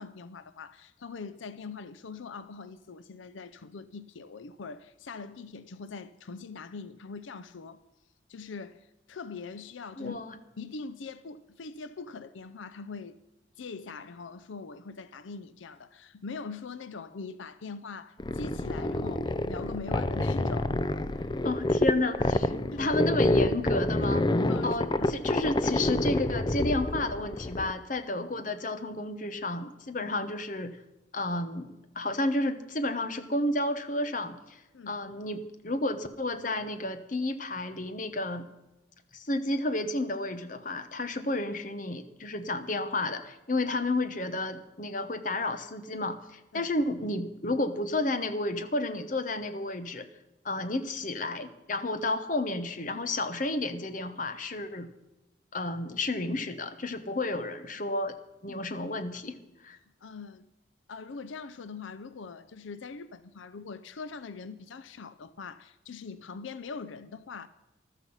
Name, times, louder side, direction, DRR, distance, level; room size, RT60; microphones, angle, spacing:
voice 1, 0.0-7.8 8.3-10.2 10.6-13.2 13.6-20.9 21.2-21.4 22.7-23.0 24.5-25.2 29.9-30.1 34.7-35.0 46.5-46.7 58.5-58.6 60.0-60.5 60.9-67.5, left 4 dB, 80° left, 0.6 m, -42 dB
voice 2, 10.0-10.3 21.4-22.5 22.8-24.3 24.6-30.8 31.1-34.6 34.9-38.5 39.1-50.1 50.4-54.9 55.5-58.2 58.4-59.4 59.6-59.8, left 2 dB, 45° left, 1.1 m, -31 dB
sound 1, 18.2-27.7, left 1 dB, 25° left, 0.5 m, -27 dB
14.0 x 13.0 x 5.5 m
head